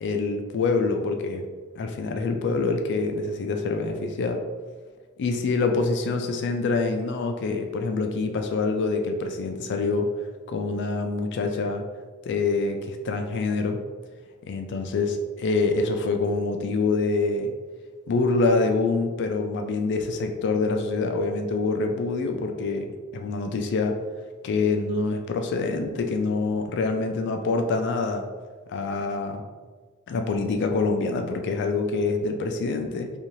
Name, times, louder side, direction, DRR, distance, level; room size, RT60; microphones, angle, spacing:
voice 1, 0.0-1.5 1.8-4.4 5.2-10.1 10.5-11.8 12.3-13.8 14.5-17.5 18.1-24.0 24.4-28.3 28.7-29.4 30.1-33.1, left 3 dB, 55° left, 5 dB, 0.3 m, -26 dB
2.6 x 2.4 x 3.0 m, 1.4 s
head